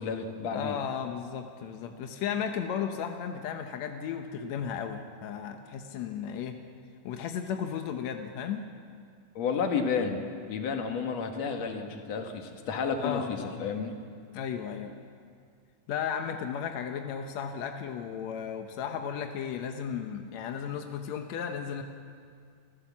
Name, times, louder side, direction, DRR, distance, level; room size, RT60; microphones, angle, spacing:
voice 1, 0.0-0.8 9.4-10.2 10.5-14.0, left 5 dB, 55° left, 4 dB, 2.3 m, -31 dB
voice 2, 0.5-6.6 7.0-8.7 13.0-13.7 14.3-14.9 15.9-21.8, left 7 dB, 75° left, 5 dB, 1.6 m, -34 dB
27.0 x 14.5 x 7.3 m, 2.2 s
omnidirectional pair, 4.4 m